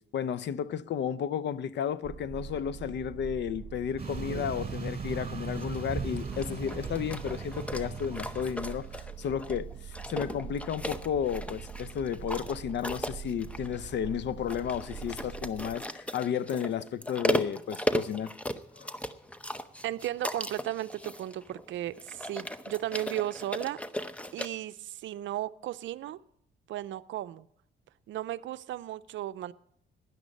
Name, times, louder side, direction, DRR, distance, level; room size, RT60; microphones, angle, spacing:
voice 1, 0.1-18.3 18.8-18.9, left 8 dB, 60° left, 0.6 m, -33 dB
sound 1, 2.0-15.7, right 8 dB, 45° right, 1.4 m, -44 dB
sound 2, 4.0-9.0, right 4 dB, 30° right, 3.6 m, -38 dB
sound 3, 5.6-24.5, equal, 5° left, 0.7 m, -37 dB
voice 2, 19.8-23.8 24.3-26.2 26.7-27.5 28.1-29.5, right 14 dB, 75° right, 0.5 m, -35 dB
16.0 x 11.0 x 5.3 m
cardioid pair, 90°, 20 cm